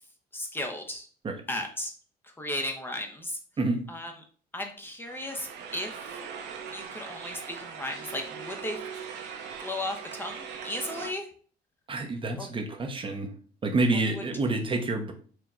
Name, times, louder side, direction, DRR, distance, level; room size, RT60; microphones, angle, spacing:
voice 1, 0.3-1.1 1.5-1.9 2.4-3.4 3.9-4.1 4.5-5.9 6.7-8.8 9.6-11.3 12.4-12.5 13.9-14.2, left 1 dB, 10° left, 3 dB, 0.7 m, -35 dB
sound 1, 5.0-11.1, right 7 dB, 80° right, 0.9 m, -40 dB
voice 2, 11.9-13.3 13.6-15.1, right 2 dB, 30° right, 4 dB, 0.7 m, -28 dB
4.5 x 2.2 x 3.7 m, 0.42 s
cardioid pair, 110°, 17 cm